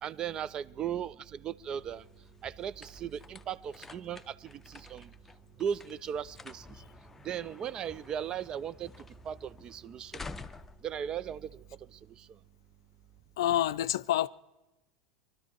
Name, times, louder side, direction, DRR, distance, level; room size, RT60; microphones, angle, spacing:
voice 1, 0.0-2.0 2.4-5.1 5.6-6.6 7.2-8.9 9.3-10.1 10.8-11.5, right 8 dB, 35° right, 0.4 m, -37 dB
sound 1, 1.4-12.1, left 3 dB, 10° left, 0.6 m, -51 dB
voice 2, 13.4-14.3, left 13 dB, 70° left, 0.4 m, -27 dB
22.5 x 12.5 x 4.6 m
hypercardioid pair, 85°, 2 cm